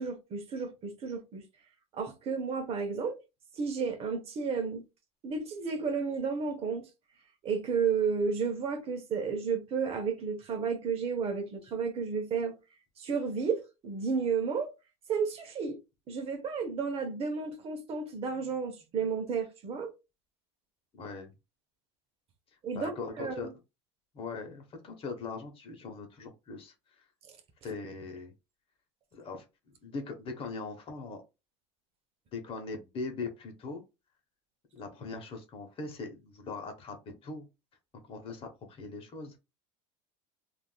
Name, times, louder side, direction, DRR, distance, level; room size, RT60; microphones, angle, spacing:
voice 1, 0.0-1.4 1.9-3.2 3.6-4.8 5.2-6.9 7.4-12.5 13.0-14.7 15.1-15.8 16.1-19.9 22.6-22.9 23.2-23.4 27.3-27.4, right 5 dB, 40° right, 0.7 m, -32 dB
voice 2, 20.9-21.3 22.7-23.5 24.1-27.0 27.6-28.3 29.1-31.2 32.3-33.8 34.7-37.4 38.1-39.4, left 4 dB, 35° left, 0.9 m, -40 dB
3.4 x 2.5 x 2.2 m
supercardioid pair, 120°, 16 cm